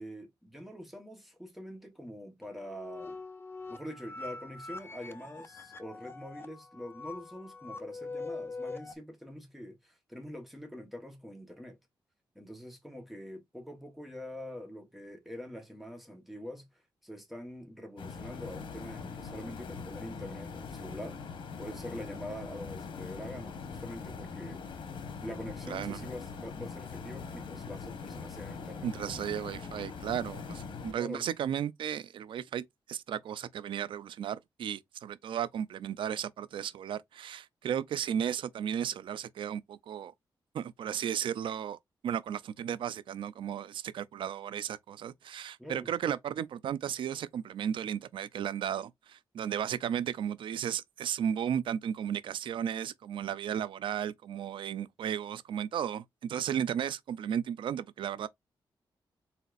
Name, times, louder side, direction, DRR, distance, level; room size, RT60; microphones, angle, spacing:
voice 1, 0.0-3.2 3.7-11.8 12.3-16.7 17.0-21.2 21.6-24.8 25.2-28.9 30.9-31.3 45.6-45.9, equal, ahead, 1.2 m, -44 dB
sound 1, 2.4-8.9, left 3 dB, 30° left, 0.6 m, -43 dB
sound 2, 18.0-30.9, left 5 dB, 85° left, 1.0 m, -42 dB
voice 2, 25.7-26.1 28.8-40.1 40.5-41.8 42.0-58.3, right 9 dB, 90° right, 0.4 m, -34 dB
4.1 x 3.9 x 2.5 m
wide cardioid pair, 140°, 8 cm